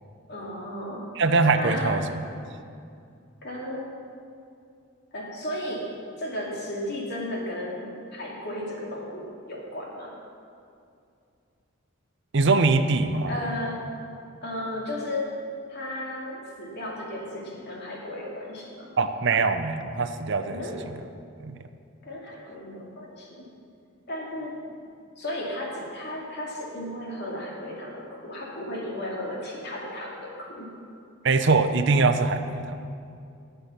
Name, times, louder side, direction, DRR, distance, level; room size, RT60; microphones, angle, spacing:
voice 1, 0.3-1.1 1.5-2.0 3.4-3.9 5.1-10.1 13.3-13.9 14.4-15.3 15.7-18.9 20.5-20.8 22.0-23.5 24.1-24.8 25.2-30.7, left 1 dB, 55° left, -3 dB, 3.0 m, -34 dB
voice 2, 1.2-2.0 12.3-13.3 19.0-20.6 21.4-21.5 31.2-32.8, right 3 dB, 60° right, 8 dB, 0.8 m, -22 dB
20.5 x 6.8 x 5.9 m, 2.5 s
head